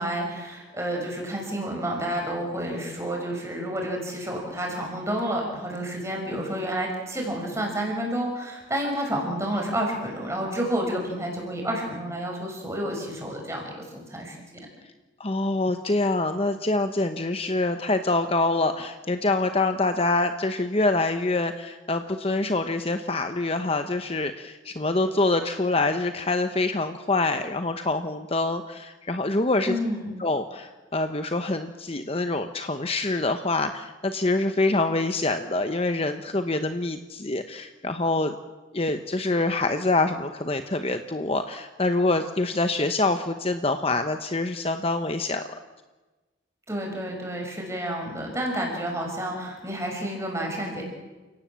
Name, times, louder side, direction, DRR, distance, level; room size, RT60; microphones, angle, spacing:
voice 1, 0.0-14.4 29.7-30.1 46.7-50.8, right 1 dB, 15° right, 0 dB, 6.0 m, -30 dB
voice 2, 15.2-29.8 30.2-38.4 38.7-45.4, left 2 dB, 30° left, 8 dB, 0.9 m, -25 dB
29.5 x 17.5 x 7.5 m, 1.2 s
head